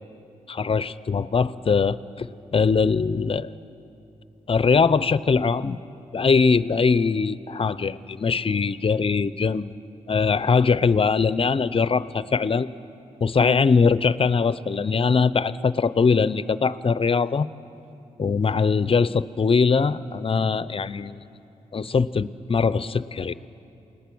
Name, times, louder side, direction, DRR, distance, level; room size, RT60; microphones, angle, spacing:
voice 1, 0.5-3.5 4.5-5.8 6.1-9.7 10.1-12.7 13.2-17.5 18.2-21.2 21.7-23.3, left 5 dB, 45° left, 16 dB, 0.7 m, -21 dB
28.5 x 19.5 x 6.2 m, 2.8 s
cardioid pair, 55°, 13 cm